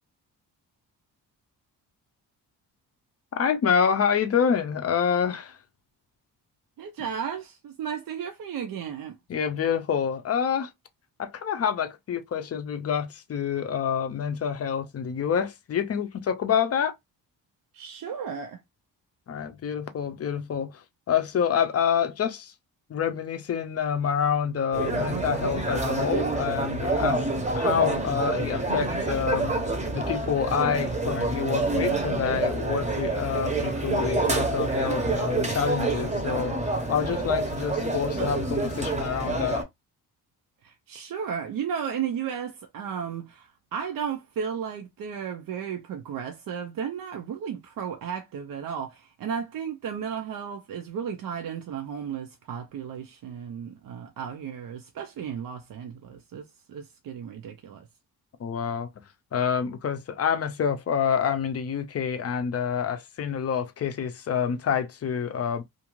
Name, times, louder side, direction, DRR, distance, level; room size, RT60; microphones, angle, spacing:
voice 1, 3.4-5.6 9.3-10.7 11.2-17.0 19.3-22.5 22.9-27.3 27.5-29.6 29.9-39.6 58.4-58.9 59.3-65.6, left 7 dB, 40° left, 0.5 m, -27 dB
voice 2, 6.8-9.2 17.7-18.6 40.6-57.9, right 7 dB, 60° right, 0.5 m, -34 dB
sound 1, 24.7-39.6, right 2 dB, 20° right, 0.7 m, -27 dB
2.5 x 2.4 x 3.0 m
cardioid pair, 110°, 39 cm